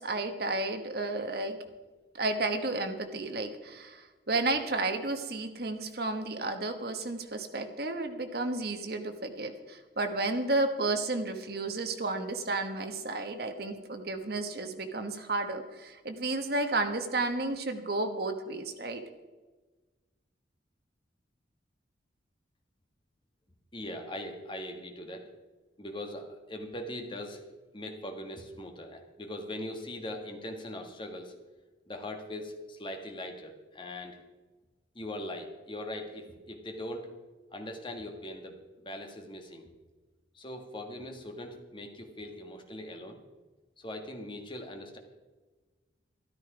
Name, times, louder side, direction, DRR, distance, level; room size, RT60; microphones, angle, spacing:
voice 1, 0.0-1.6 2.1-19.0, right 2 dB, 55° right, 7 dB, 1.2 m, -32 dB
voice 2, 23.7-25.3 25.8-27.4 27.7-31.3 31.9-34.2 34.9-37.1 37.5-39.7 40.3-43.2 43.8-45.0, left 1 dB, 25° left, 4 dB, 1.5 m, -41 dB
13.0 x 12.5 x 4.9 m, 1.3 s
head